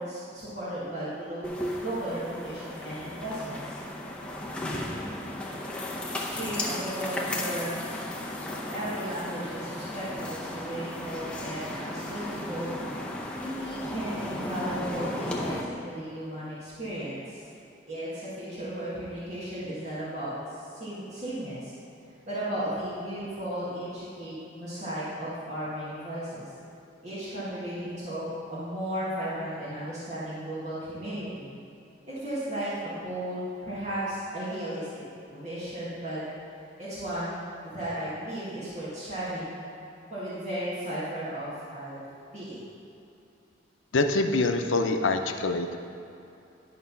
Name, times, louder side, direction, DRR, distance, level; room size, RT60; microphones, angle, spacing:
voice 1, 0.0-1.5 1.8-3.8 6.1-7.8 8.7-12.8 13.4-17.4 17.9-21.7 22.3-26.5 27.0-31.5 32.1-34.9 35.3-36.2 36.8-39.6 40.1-42.0 42.3-42.6, right 1 dB, 40° right, -11 dB, 1.9 m, -35 dB
sound 1, 1.4-15.6, left 1 dB, 5° left, 0.6 m, -35 dB
voice 2, 43.9-45.8, left 2 dB, 90° left, 6 dB, 0.6 m, -25 dB
11.0 x 3.9 x 5.7 m, 2.8 s
head